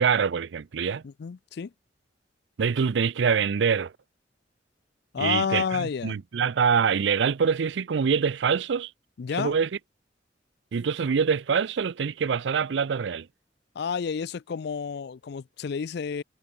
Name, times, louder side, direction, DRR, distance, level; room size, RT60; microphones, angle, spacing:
voice 1, 0.0-1.0 2.6-3.9 5.2-8.9 9.4-9.7 10.7-13.3, right 6 dB, 80° right, 0.5 m, -25 dB
voice 2, 1.0-1.7 5.1-6.2 9.2-9.6 13.8-16.2, left 6 dB, 65° left, 0.4 m, -30 dB
head